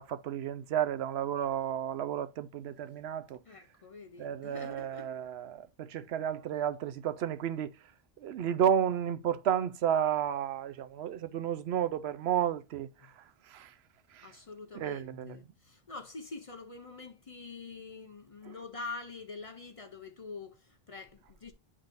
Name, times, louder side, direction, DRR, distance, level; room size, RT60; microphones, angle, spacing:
voice 1, 0.0-3.4 4.2-7.7 8.2-12.9 13.2-13.7 14.1-14.3 14.7-15.4 18.5-18.6, right 9 dB, 80° right, 0.8 m, -32 dB
voice 2, 3.5-5.1 13.0-13.1 14.2-21.5, left 4 dB, 40° left, 0.6 m, -45 dB
10.5 x 3.8 x 2.5 m
omnidirectional pair, 1.1 m